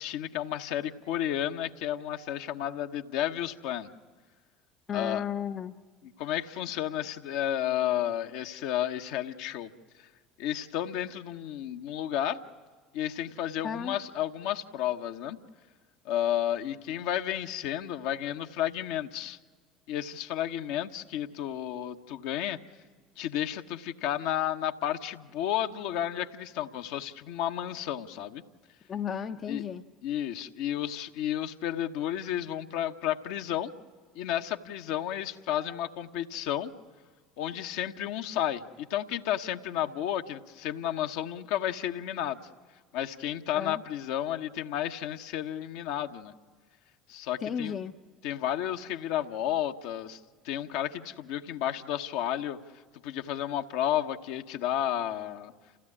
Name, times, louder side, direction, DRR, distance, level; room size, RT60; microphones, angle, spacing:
voice 1, 0.0-3.9 4.9-5.2 6.2-9.7 10.0-10.1 10.4-12.4 12.9-15.4 16.0-19.4 19.9-22.6 23.2-28.4 29.5-29.6 30.0-33.7 34.1-36.7 37.4-42.4 42.9-46.3 47.1-47.7 48.2-50.2 50.4-52.6 53.0-55.5, left 11 dB, 65° left, 1.1 m, -32 dB
voice 2, 4.9-5.7 13.6-14.0 28.9-29.9 43.5-43.8 47.4-47.9, left 7 dB, 40° left, 0.7 m, -34 dB
28.0 x 16.0 x 9.8 m
hypercardioid pair, 65°, 0 cm